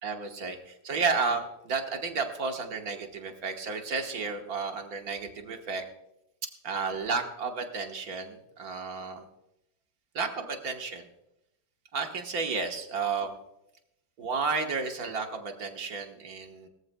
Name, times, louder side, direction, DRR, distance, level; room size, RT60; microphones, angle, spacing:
voice 1, 0.0-5.8 6.6-9.2 10.1-11.0 11.9-13.3 14.2-16.7, right 4 dB, 55° right, 4 dB, 1.7 m, -32 dB
21.0 x 14.0 x 2.3 m, 0.86 s
omnidirectional pair, 2.0 m